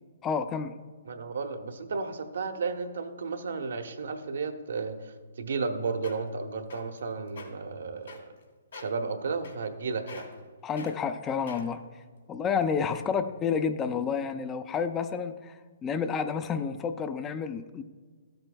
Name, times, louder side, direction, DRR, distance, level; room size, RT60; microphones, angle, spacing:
voice 1, 0.2-0.8 10.6-11.8 12.3-17.8, left 6 dB, 20° left, 10 dB, 0.4 m, -30 dB
voice 2, 1.1-8.3 8.7-10.3, right 4 dB, 75° right, 6 dB, 0.8 m, -33 dB
sound 1, 5.7-5.8 6.0-6.3 6.7-7.0 7.3-7.5 8.1-8.4 8.7-9.0 9.4-9.8 10.1-10.4 10.8-10.9 11.5-11.8 12.4-12.5, left 3 dB, 80° left, 2.4 m, -44 dB
13.5 x 7.8 x 2.3 m, 1.5 s
hypercardioid pair, 140°, 0 cm